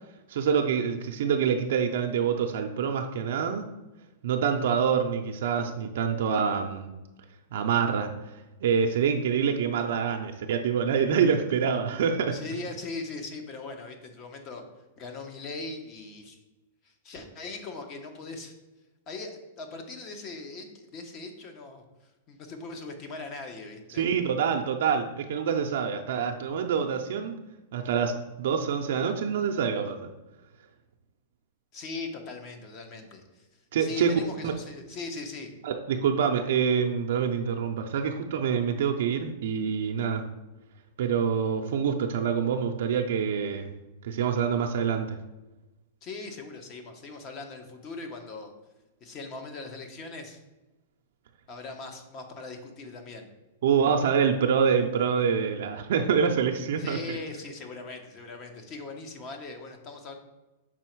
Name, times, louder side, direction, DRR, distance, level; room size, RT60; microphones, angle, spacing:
voice 1, 0.3-3.7 4.2-6.9 7.5-8.1 8.6-12.3 24.0-27.4 27.7-30.1 33.7-34.1 34.4-34.5 35.6-40.3 41.0-43.7 44.0-45.2 53.6-57.2, right 7 dB, 70° right, 3 dB, 0.5 m, -26 dB
voice 2, 12.3-14.6 15.0-16.4 16.8-18.5 19.1-21.8 22.3-24.0 31.7-33.5 33.8-35.5 46.0-48.5 49.0-50.4 51.5-53.3 56.8-60.1, left 3 dB, 35° left, 5 dB, 1.0 m, -40 dB
6.2 x 4.1 x 4.6 m, 1.1 s
hypercardioid pair, 145°, 0 cm